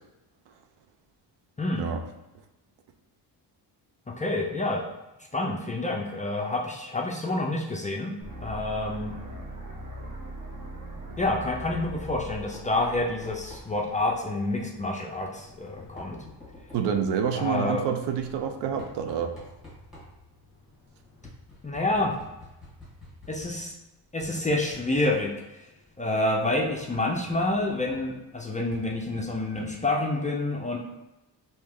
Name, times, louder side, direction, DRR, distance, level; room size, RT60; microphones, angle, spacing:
voice 1, 1.6-1.9 4.2-4.8 5.3-8.1 8.4-9.1 11.2-16.2 17.3-17.8 21.6-22.2 23.3-23.7 24.1-25.3 26.0-30.8, left 2 dB, 20° left, 0 dB, 0.3 m, -28 dB
sound 1, 8.2-14.2, right 1 dB, 45° right, 0.9 m, -40 dB
Knock, 11.7-30.1, left 2 dB, ahead, 1.3 m, -50 dB
voice 2, 16.7-19.3, right 7 dB, 75° right, 6 dB, 0.5 m, -27 dB
3.1 x 2.8 x 3.5 m, 0.99 s
wide cardioid pair, 135°, 43 cm